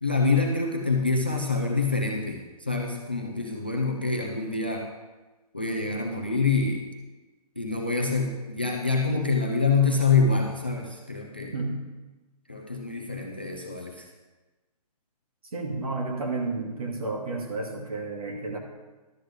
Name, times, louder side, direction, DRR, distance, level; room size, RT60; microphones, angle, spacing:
voice 1, 0.0-4.9 5.5-6.8 7.6-11.5 12.5-13.9, left 4 dB, 15° left, 1 dB, 0.3 m, -26 dB
voice 2, 15.5-18.6, right 3 dB, 60° right, 1 dB, 2.5 m, -31 dB
11.5 x 7.7 x 5.1 m, 1.2 s
hypercardioid pair, 175°, 21 cm